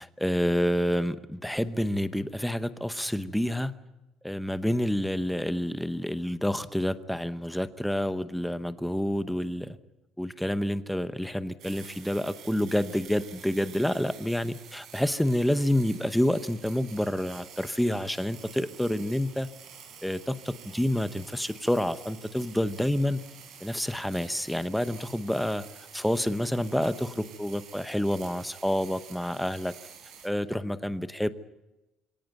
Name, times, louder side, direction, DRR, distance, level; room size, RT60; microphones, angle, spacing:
voice 1, 0.0-3.7 4.2-9.8 10.2-19.5 20.0-23.2 23.6-25.6 25.9-29.7 30.2-31.3, equal, ahead, 12 dB, 0.8 m, -28 dB
sound 1, 11.6-30.3, right 7 dB, 55° right, 4.8 m, -49 dB
24.5 x 17.5 x 9.1 m, 1.0 s
cardioid pair, 155°, 0 cm